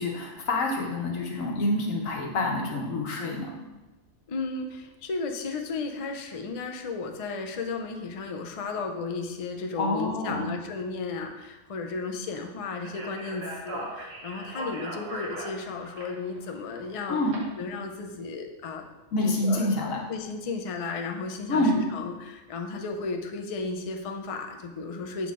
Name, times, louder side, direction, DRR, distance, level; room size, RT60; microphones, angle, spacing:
voice 1, 0.0-3.5 9.8-10.5 17.1-17.4 19.1-20.0 21.5-21.8, left 2 dB, 85° left, 0 dB, 1.4 m, -27 dB
voice 2, 4.3-17.2 17.6-18.8 19.2-19.7 20.1-25.3, left 4 dB, 55° left, 4 dB, 0.3 m, -34 dB
Speech, 12.8-17.4, right 1 dB, 80° right, 1.7 m, -39 dB
7.0 x 3.8 x 3.7 m, 1.1 s
omnidirectional pair, 1.3 m